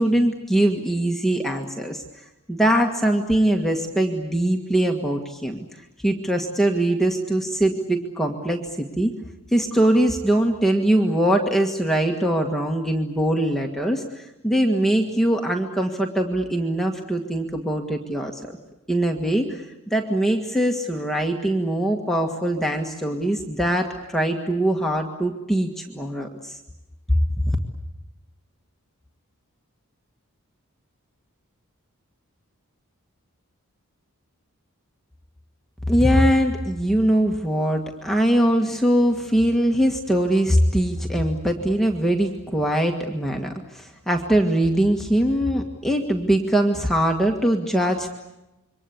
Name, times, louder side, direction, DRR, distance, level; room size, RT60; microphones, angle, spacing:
voice 1, 0.0-5.7 6.0-9.1 9.5-18.6 18.9-26.6 27.1-27.6 35.9-48.1, right 1 dB, ahead, 1 dB, 1.7 m, -22 dB
27.5 x 24.0 x 8.4 m, 0.97 s
head